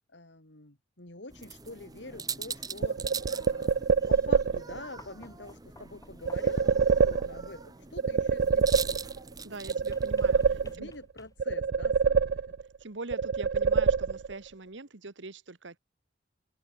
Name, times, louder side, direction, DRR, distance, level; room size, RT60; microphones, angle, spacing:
voice 1, 0.1-3.8 4.1-9.0 10.6-12.6, left 2 dB, 70° left, 3.7 m, -46 dB
sound 1, 1.3-10.8, right 5 dB, 20° right, 1.1 m, -42 dB
sound 2, 2.8-4.8 6.3-7.6 8.0-9.3 9.7-11.0 11.4-12.8 13.1-14.5, right 5 dB, 60° right, 0.4 m, -26 dB
sound 3, 5.0-6.7 9.9-11.7 13.2-13.3, left 2 dB, 20° left, 1.2 m, -55 dB
voice 2, 9.4-10.9 12.8-15.8, right 3 dB, 75° right, 1.4 m, -43 dB
open air
head